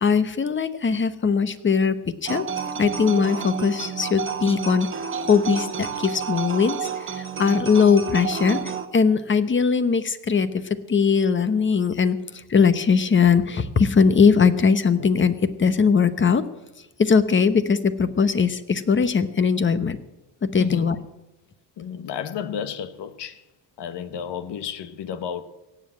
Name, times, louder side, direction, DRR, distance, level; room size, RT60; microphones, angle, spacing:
voice 1, 0.0-2.5 2.8-4.9 5.2-16.4 17.0-20.0 20.4-21.0, left 5 dB, 25° left, 1.0 m, -20 dB
sound 1, 2.2-8.9, right 7 dB, 25° right, 1.2 m, -30 dB
voice 2, 21.8-23.4 23.8-25.4, left 8 dB, 65° left, 1.3 m, -32 dB
17.5 x 7.6 x 8.8 m
cardioid pair, 115°, 45 cm